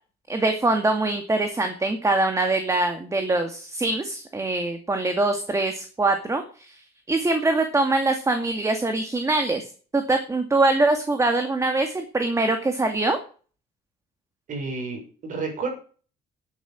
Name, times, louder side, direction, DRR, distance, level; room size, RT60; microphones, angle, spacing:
voice 1, 0.3-6.8 7.1-9.7 9.9-13.2, right 2 dB, 20° right, 6 dB, 2.2 m, -23 dB
voice 2, 14.5-15.7, right 4 dB, 50° right, 2 dB, 6.3 m, -30 dB
10.0 x 9.6 x 7.4 m, 0.39 s
cardioid pair, 110°, 17 cm